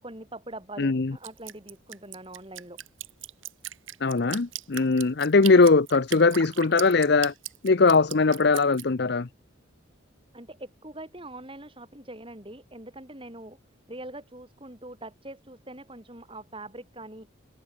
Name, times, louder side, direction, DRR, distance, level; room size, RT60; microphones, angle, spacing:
voice 1, 0.0-2.8 10.3-13.6 13.9-17.3, right 1 dB, 25° right, 5.3 m, -43 dB
voice 2, 0.8-1.1 4.0-7.3 7.6-9.3, left 3 dB, 55° left, 0.7 m, -20 dB
Drip, 1.2-8.8, right 12 dB, 75° right, 3.2 m, -38 dB
head